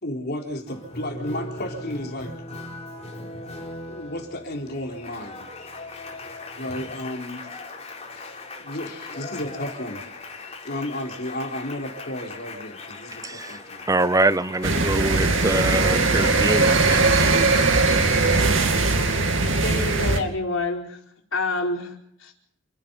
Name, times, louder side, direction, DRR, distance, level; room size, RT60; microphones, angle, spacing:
voice 1, 0.0-2.4 3.9-5.5 6.6-7.6 8.1-13.9, left 1 dB, 55° left, 2 dB, 4.0 m, -33 dB
Applause, 0.7-20.3, left 2 dB, 35° left, 4.6 m, -40 dB
voice 2, 13.2-13.6 13.9-17.5, right 2 dB, 15° right, 14 dB, 0.9 m, -24 dB
sound 1, 14.6-20.2, right 3 dB, 70° right, 2.5 m, -20 dB
voice 3, 19.6-21.0 21.3-21.9 22.2-22.3, left 3 dB, 80° left, 1 dB, 4.6 m, -27 dB
28.5 x 10.0 x 9.5 m, 0.67 s
head